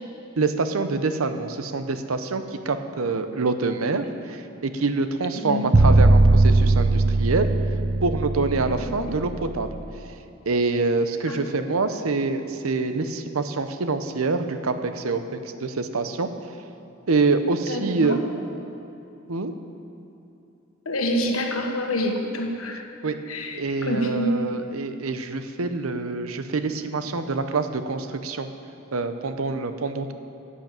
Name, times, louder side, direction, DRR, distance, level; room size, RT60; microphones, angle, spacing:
voice 1, 0.4-7.5 8.0-9.7 10.5-16.3 17.1-18.2 19.3-19.5 23.0-23.2 23.5-28.5 28.9-30.1, right 3 dB, 80° right, 9 dB, 0.7 m, -26 dB
sound 1, 5.7-9.8, right 2 dB, 35° right, 0.5 m, -18 dB
voice 2, 11.3-11.6 17.7-18.2 20.8-22.8 23.3-24.4, equal, 75° left, 2 dB, 1.4 m, -27 dB
10.5 x 8.5 x 7.4 m, 2.8 s
head